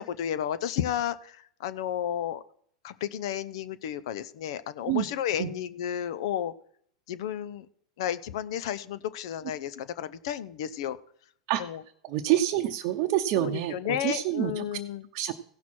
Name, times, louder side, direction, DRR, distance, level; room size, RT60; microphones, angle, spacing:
voice 1, 0.0-2.4 2.8-6.5 7.1-7.7 8.0-11.0 11.6-11.8 13.3-15.1, left 10 dB, 70° left, 15 dB, 0.7 m, -32 dB
voice 2, 12.0-14.8 15.1-15.3, right 13 dB, 55° right, 3 dB, 0.8 m, -27 dB
16.5 x 6.0 x 4.3 m, 0.63 s
hypercardioid pair, 110°, 3 cm